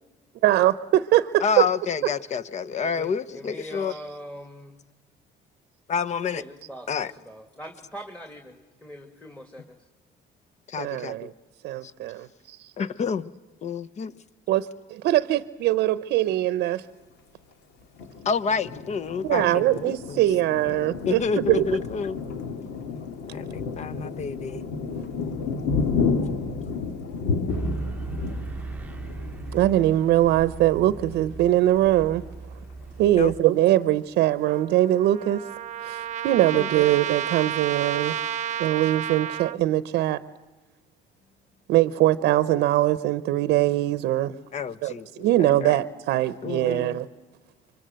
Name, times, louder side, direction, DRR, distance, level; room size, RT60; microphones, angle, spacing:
voice 1, 0.4-1.6 10.8-11.3 11.6-12.7 14.5-16.8 19.2-21.6 24.5-24.6 29.5-32.2 33.0-35.4 35.8-38.2 38.6-40.2 41.7-44.3 44.8-44.9 45.2-47.1, right 14 dB, 80° right, 0.7 m, -22 dB
voice 2, 1.4-3.9 5.9-6.4 6.9-7.1 10.7-11.2 12.8-13.3 13.6-14.1 18.2-20.2 21.1-22.2 23.3-24.6 33.2-33.3 36.5-36.7 44.5-45.7 46.4-47.0, left 6 dB, 40° left, 0.9 m, -29 dB
voice 3, 2.8-4.8 6.3-9.9, equal, 10° left, 2.1 m, -42 dB
Thunder, 18.0-32.3 32.8-32.9 33.2-33.8, left 5 dB, 85° left, 2.1 m, -32 dB
sound 1, 27.5-33.4, right 3 dB, 10° right, 0.9 m, -37 dB
Trumpet, 34.5-39.6, right 9 dB, 45° right, 0.8 m, -31 dB
25.5 x 24.5 x 7.7 m
cardioid pair, 110°, 17 cm